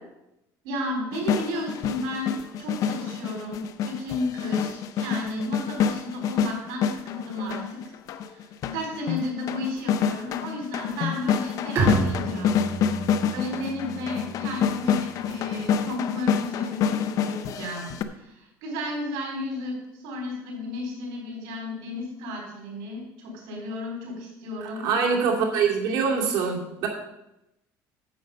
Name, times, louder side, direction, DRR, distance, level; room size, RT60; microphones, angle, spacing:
voice 1, 0.6-13.0 13.3-24.9, left 1 dB, 90° right, 0 dB, 3.9 m, -33 dB
sound 1, 1.1-18.0, left 7 dB, 55° left, 0.7 m, -27 dB
Bowed string instrument, 11.8-15.3, right 3 dB, 40° right, 3.4 m, -30 dB
voice 2, 24.8-26.9, right 5 dB, 70° right, -1 dB, 2.6 m, -24 dB
9.4 x 7.5 x 5.4 m, 0.89 s
cardioid pair, 145°, 7 cm